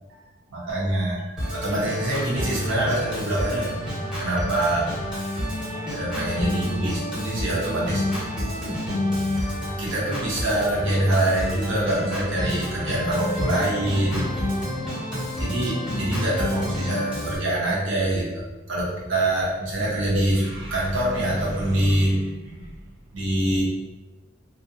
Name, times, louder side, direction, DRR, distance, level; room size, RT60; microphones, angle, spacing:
voice 1, 0.5-3.7 4.2-4.9 5.9-8.0 9.8-14.4 15.4-22.7 23.1-23.6, right 1 dB, 70° right, -6 dB, 0.7 m, -25 dB
Organ, 1.4-17.4, left 1 dB, 5° right, 0.8 m, -29 dB
2.4 x 2.1 x 2.6 m, 1.1 s
head